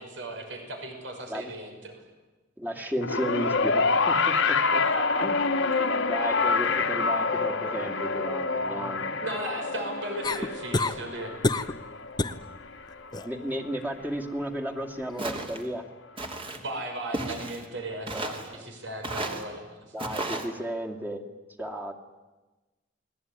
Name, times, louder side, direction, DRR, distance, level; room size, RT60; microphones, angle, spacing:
voice 1, 0.0-2.0 4.7-5.3 5.7-6.0 6.6-6.9 8.6-11.3 16.6-19.9, right 1 dB, 70° right, 4 dB, 6.0 m, -37 dB
voice 2, 2.6-4.8 5.2-5.4 6.0-9.1 13.2-15.8 18.1-18.3 19.3-19.5 19.9-21.2 21.6-21.9, equal, 10° right, 1 dB, 2.4 m, -33 dB
sound 1, 3.0-13.5 14.5-14.6, left 4 dB, 80° left, 1.8 m, -27 dB
sound 2, 10.2-11.0 11.4-11.8 12.2-12.4 12.9-13.3 15.1-15.2, left 2 dB, 20° left, 0.9 m, -27 dB
Walk footsteps, 15.2-15.6 16.2-16.6 17.1-17.7 18.1-18.5 19.0-19.4 20.0-20.5, right 2 dB, 30° right, 2.8 m, -33 dB
29.0 x 21.0 x 9.8 m, 1.2 s
head